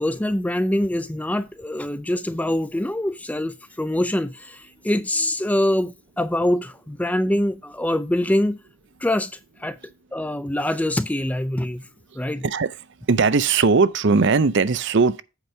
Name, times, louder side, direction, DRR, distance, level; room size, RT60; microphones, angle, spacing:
voice 1, 0.0-8.6 9.0-9.8 10.1-11.8 12.2-12.4, left 1 dB, 5° left, 0.4 m, -24 dB
voice 2, 12.4-12.8 13.1-15.2, right 4 dB, 55° right, 0.6 m, -19 dB
8.1 x 5.2 x 4.5 m
head